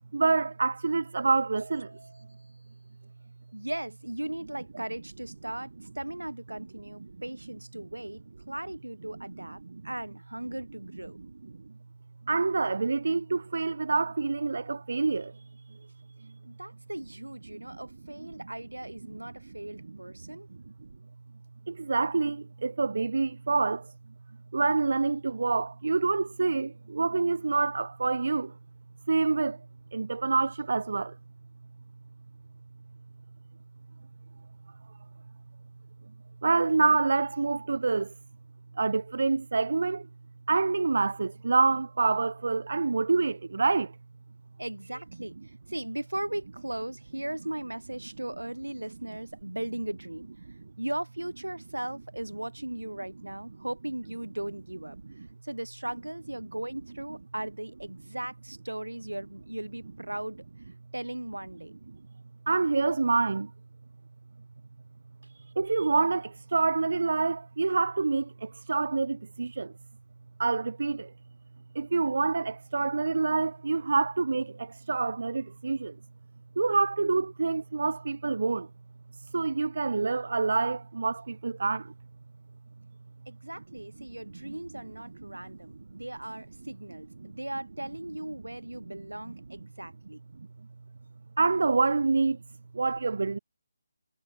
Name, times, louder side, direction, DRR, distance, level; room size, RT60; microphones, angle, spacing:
voice 1, 0.1-1.9 9.7-9.8 12.3-15.3 17.5-17.6 21.7-23.9 24.5-28.5 29.1-29.6 29.9-31.2 36.4-38.1 38.8-40.1 40.5-43.9 62.5-63.5 65.6-69.7 70.4-71.1 71.7-76.0 76.6-78.7 79.2-81.9 84.4-84.5 90.4-90.5 91.4-92.4 92.7-93.4, right 4 dB, 60° right, 0.5 m, -27 dB
voice 2, 1.8-2.5 3.5-11.2 16.4-20.5 44.6-50.3 50.8-55.0 55.4-60.4 60.9-61.7 83.3-90.2, right 1 dB, 90° right, 4.1 m, -38 dB
figure-of-eight pair, 150°, 0 cm